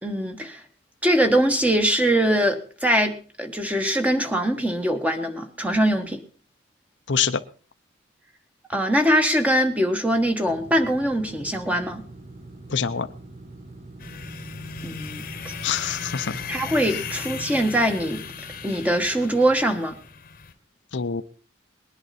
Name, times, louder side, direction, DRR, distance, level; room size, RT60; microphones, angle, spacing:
voice 1, 0.0-0.6 1.0-6.2 8.7-12.0 14.8-15.5 16.5-18.2 18.6-20.0, right 1 dB, 5° right, 6 dB, 1.4 m, -22 dB
voice 2, 7.1-7.4 12.7-13.1 15.6-16.4 16.9-17.0 20.9-21.2, left 7 dB, 65° left, 10 dB, 0.7 m, -25 dB
sound 1, 10.5-20.3, right 2 dB, 35° right, 1.7 m, -44 dB
sound 2, 14.0-20.5, left 6 dB, 45° left, 1.1 m, -37 dB
20.5 x 11.0 x 4.2 m, 0.39 s
head